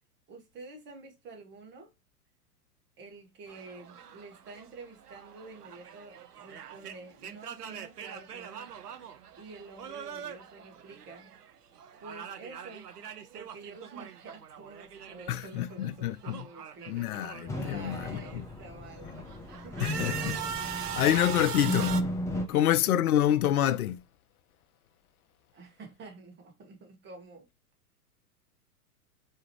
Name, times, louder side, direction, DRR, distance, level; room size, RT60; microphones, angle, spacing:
voice 1, 0.3-1.9 3.0-8.7 9.4-11.3 12.0-12.9 13.3-19.3 19.6-19.8 22.3-22.8 25.5-27.4, right 3 dB, 25° right, 1.7 m, -49 dB
sound 1, 3.5-11.5 11.8-15.5 15.8-18.5 19.0-22.0, right 8 dB, 85° right, 0.7 m, -41 dB
voice 2, 15.3-16.5 16.9-18.2 19.8-22.0 22.5-24.0, left 12 dB, 70° left, 0.5 m, -27 dB
sound 2, 17.5-22.4, left 1 dB, 5° left, 0.5 m, -35 dB
4.6 x 3.2 x 3.0 m
figure-of-eight pair, 100°, 46 cm